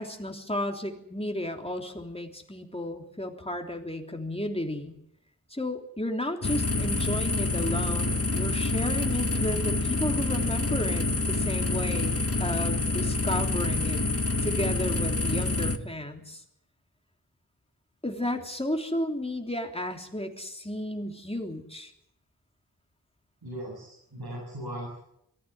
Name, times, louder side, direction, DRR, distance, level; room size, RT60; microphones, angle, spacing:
voice 1, 0.0-4.9 5.5-14.0 14.4-16.4 18.0-21.9, left 1 dB, 15° left, 3 dB, 3.4 m, -33 dB
sound 1, 6.4-15.8, left 3 dB, 40° left, 1.6 m, -27 dB
voice 2, 23.4-25.0, right 1 dB, 90° right, -3 dB, 7.5 m, -38 dB
23.0 x 14.5 x 9.5 m, 0.76 s
wide cardioid pair, 65°, 37 cm